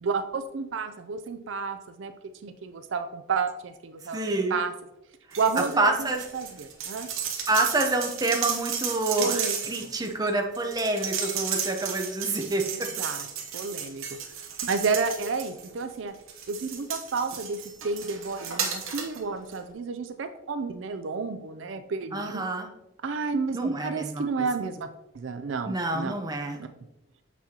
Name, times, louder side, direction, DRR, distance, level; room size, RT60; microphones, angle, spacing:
voice 1, 0.0-2.1 2.4-4.2 4.5-4.7 5.4-5.9 6.3-7.1 9.2-9.6 12.7-13.3 13.5-14.2 14.6-16.1 16.5-22.4 23.0-24.9 25.1-26.1 26.6-26.7, right 4 dB, 65° right, 9 dB, 0.4 m, -31 dB
voice 2, 4.0-4.6 5.6-6.2 7.5-12.9 22.1-22.7 23.5-24.2 25.6-26.6, right 2 dB, 20° right, 3 dB, 0.7 m, -27 dB
sound 1, 5.3-5.8 6.1-15.8 16.3-19.2 19.5-19.6, right 7 dB, 80° right, 0.9 m, -34 dB
6.9 x 6.1 x 2.9 m, 0.91 s
head